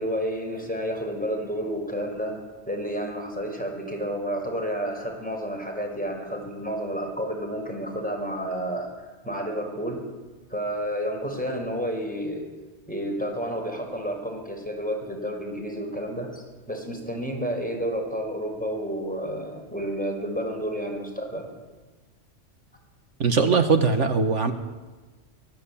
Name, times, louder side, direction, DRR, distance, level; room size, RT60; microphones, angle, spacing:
voice 1, 0.0-8.9 9.2-10.0 10.5-12.4 12.9-21.5, equal, 5° left, 2 dB, 5.4 m, -30 dB
voice 2, 23.2-24.5, right 4 dB, 80° right, 7 dB, 1.9 m, -20 dB
24.0 x 19.0 x 8.7 m, 1.3 s
omnidirectional pair, 1.2 m